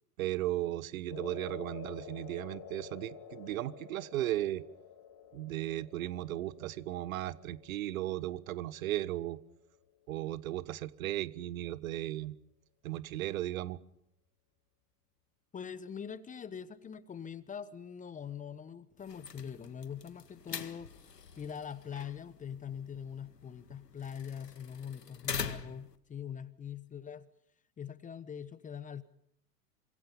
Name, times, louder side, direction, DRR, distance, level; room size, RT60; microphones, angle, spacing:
voice 1, 0.2-4.6 5.3-9.4 10.1-12.3 12.8-13.8, right 14 dB, 60° right, 17 dB, 1.5 m, -36 dB
sound 1, 1.1-9.4, left 7 dB, 40° left, 5.6 m, -50 dB
voice 2, 15.5-27.3 27.8-29.0, left 8 dB, 15° left, 17 dB, 1.1 m, -43 dB
sound 2, 19.0-26.0, left 6 dB, 85° left, 1.8 m, -44 dB
28.0 x 26.0 x 5.5 m, 0.74 s
figure-of-eight pair, 95°, 47 cm